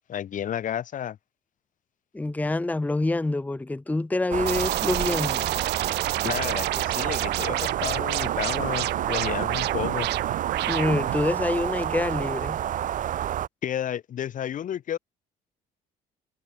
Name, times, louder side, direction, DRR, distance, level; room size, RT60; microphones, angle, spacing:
voice 1, 0.1-1.2 6.2-10.1 13.6-15.0, left 10 dB, 50° left, 1.2 m, -31 dB
voice 2, 2.1-5.5 10.7-12.6, left 2 dB, 10° left, 1.0 m, -26 dB
sound 1, 4.3-13.5, right 11 dB, 50° right, 0.9 m, -29 dB
sound 2, 4.5-11.2, right 18 dB, 80° right, 1.1 m, -30 dB
cardioid pair, 110°, 17 cm